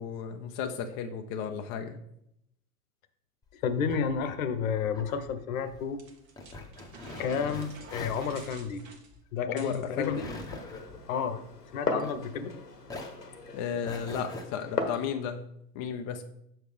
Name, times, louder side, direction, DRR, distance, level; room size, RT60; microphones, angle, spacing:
voice 1, 0.0-2.0 9.5-10.2 13.5-15.4 15.7-16.2, left 7 dB, 25° left, 5 dB, 0.3 m, -34 dB
sound 1, 3.4-12.5 12.8-14.4, left 2 dB, 10° left, 0.8 m, -44 dB
voice 2, 3.5-6.0 7.2-8.9 9.3-10.4 11.1-11.4 11.7-12.5, left 6 dB, 60° left, 11 dB, 0.9 m, -31 dB
sound 2, 6.0-9.9, right 4 dB, 55° right, 1.3 m, -50 dB
Glass, 9.9-15.1, left 4 dB, 90° left, 1.0 m, -37 dB
6.7 x 6.2 x 3.3 m, 0.76 s
figure-of-eight pair, 90°, 46 cm